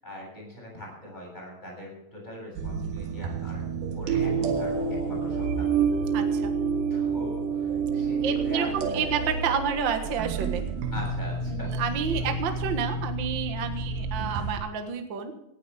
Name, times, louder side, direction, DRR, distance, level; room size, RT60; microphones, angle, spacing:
voice 1, 0.0-5.7 6.9-9.1 10.9-11.7 12.2-12.3 13.9-14.0, left 1 dB, 10° left, -2 dB, 7.4 m, -42 dB
sound 1, 2.6-14.6, right 5 dB, 90° right, 3.3 m, -29 dB
sound 2, 4.2-10.8, left 13 dB, 80° left, 2.3 m, -40 dB
voice 2, 6.1-6.5 8.2-10.6 11.5-15.3, right 6 dB, 55° right, 6 dB, 1.3 m, -30 dB
18.5 x 14.5 x 3.5 m, 0.86 s
omnidirectional pair, 4.3 m